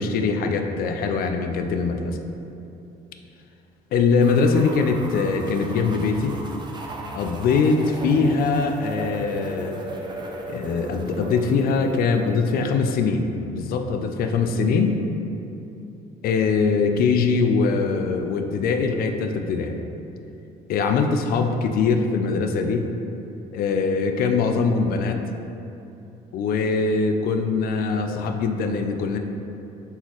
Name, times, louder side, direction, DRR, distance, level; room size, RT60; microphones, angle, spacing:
voice 1, 0.0-2.2 3.9-6.4 7.2-9.8 10.5-14.9 16.2-19.8 20.7-22.9 23.5-25.2 26.3-29.2, left 4 dB, 65° left, 5 dB, 0.4 m, -22 dB
sound 1, 4.2-12.8, right 2 dB, 25° right, 0.5 m, -36 dB
4.1 x 3.9 x 3.0 m, 2.8 s
supercardioid pair, 85°, 17 cm